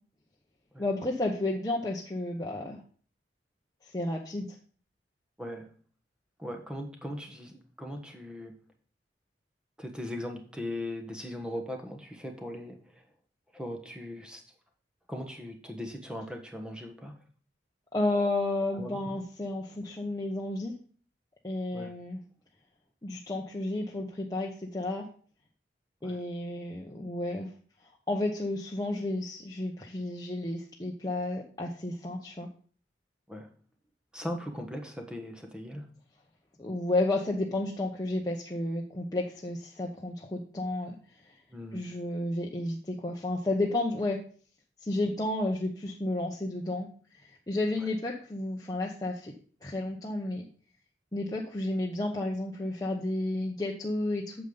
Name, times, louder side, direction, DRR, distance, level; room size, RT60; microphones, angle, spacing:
voice 1, 0.8-2.8 3.8-4.5 17.9-20.7 21.4-22.2 23.0-25.0 26.0-27.5 28.1-32.5 36.6-41.0 41.2-41.3 41.7-44.2 44.8-46.9 47.2-49.3 49.6-50.4 51.1-54.4, left 2 dB, 20° left, -2 dB, 0.9 m, -32 dB
voice 2, 5.4-5.7 6.4-8.5 9.8-13.0 13.5-14.4 15.1-17.1 18.7-19.0 21.7-21.9 26.0-26.2 33.3-33.5 34.1-35.8 41.5-41.8 47.8-47.9, left 1 dB, 5° right, 3 dB, 1.2 m, -39 dB
9.0 x 6.8 x 3.9 m, 0.43 s
head